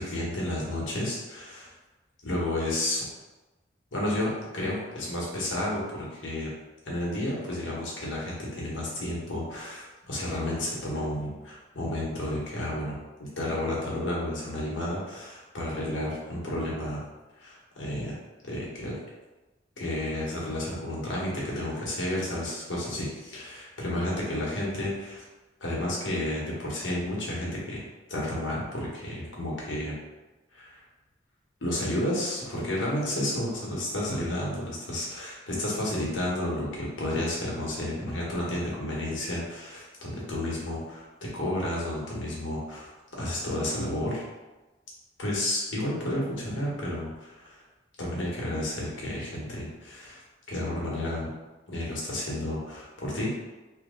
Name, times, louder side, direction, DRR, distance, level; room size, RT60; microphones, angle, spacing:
voice 1, 0.0-1.7 2.2-3.0 3.9-6.5 6.8-17.0 17.4-18.2 18.4-19.0 19.8-25.2 25.6-29.9 30.5-30.8 31.6-42.9 43.2-44.2 45.2-47.6 48.0-50.2 50.5-51.3 51.7-53.3, left 1 dB, 85° left, -4 dB, 1.2 m, -31 dB
3.0 x 2.8 x 3.8 m, 1.2 s
head